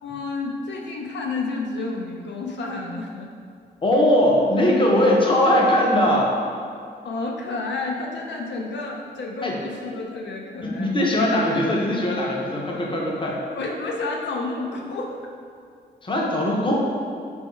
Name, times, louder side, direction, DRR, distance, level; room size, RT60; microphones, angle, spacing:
voice 1, 0.0-3.3 7.0-11.0 13.5-15.2, left 3 dB, 80° left, 0 dB, 0.5 m, -30 dB
voice 2, 3.8-6.3 9.4-9.6 10.6-13.4 16.0-16.8, left 1 dB, 30° left, -2 dB, 0.6 m, -20 dB
4.3 x 3.4 x 3.0 m, 2.3 s
wide cardioid pair, 140°, 18 cm